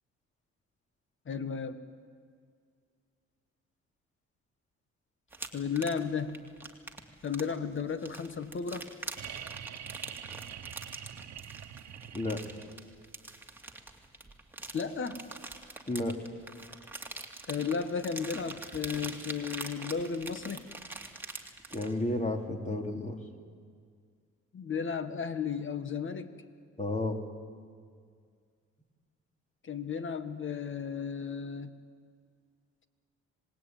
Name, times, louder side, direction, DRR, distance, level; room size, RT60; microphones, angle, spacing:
voice 1, 1.3-1.8 5.5-6.4 7.2-8.9 14.7-15.2 17.5-20.7 24.5-26.3 29.6-31.7, left 6 dB, 40° left, 11 dB, 1.6 m, -34 dB
sound 1, 5.3-21.9, right 2 dB, 5° right, 2.5 m, -44 dB
sound 2, 9.2-12.9 14.6-14.7, right 9 dB, 65° right, 1.3 m, -45 dB
voice 2, 15.9-16.2 21.7-23.2 26.8-27.2, left 2 dB, 25° left, 4 dB, 3.0 m, -32 dB
26.5 x 19.5 x 9.2 m, 2.1 s
cardioid pair, 90°, 30 cm